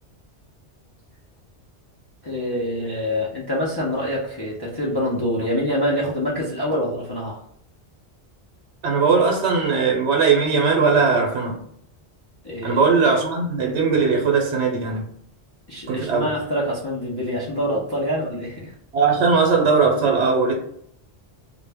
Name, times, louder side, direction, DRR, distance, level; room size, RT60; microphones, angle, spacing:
voice 1, 2.2-7.4 12.4-13.1 15.7-18.7, equal, 35° left, -6 dB, 0.4 m, -26 dB
voice 2, 8.8-11.6 12.6-15.1 15.9-16.3 18.9-20.5, right 5 dB, 85° right, 1 dB, 0.9 m, -19 dB
2.1 x 2.1 x 3.3 m, 0.68 s
omnidirectional pair, 1.1 m